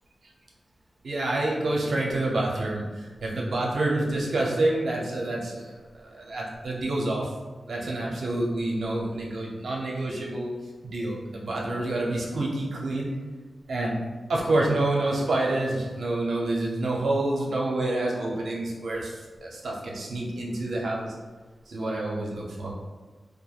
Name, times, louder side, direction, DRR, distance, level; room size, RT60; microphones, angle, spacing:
voice 1, 1.0-7.3 7.7-10.5 10.8-13.1 13.7-14.0 14.3-19.1 19.4-21.1 21.7-22.7, right 2 dB, 80° right, -3 dB, 0.5 m, -28 dB
3.0 x 2.2 x 2.3 m, 1.3 s
wide cardioid pair, 125°, 0 cm